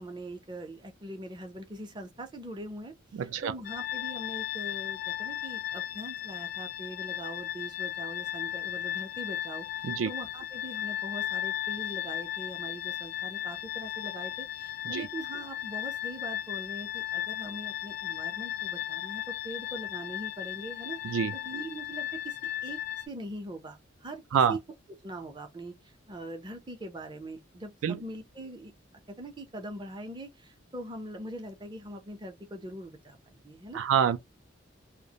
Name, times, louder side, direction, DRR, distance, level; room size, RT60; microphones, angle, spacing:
voice 1, 0.0-24.6 25.0-28.7 29.1-33.8, right 1 dB, 25° right, 0.5 m, -42 dB
sound 1, 3.6-23.1, left 12 dB, 50° left, 0.4 m, -36 dB
voice 2, 33.7-34.2, right 8 dB, 80° right, 0.3 m, -25 dB
2.4 x 2.0 x 2.7 m
head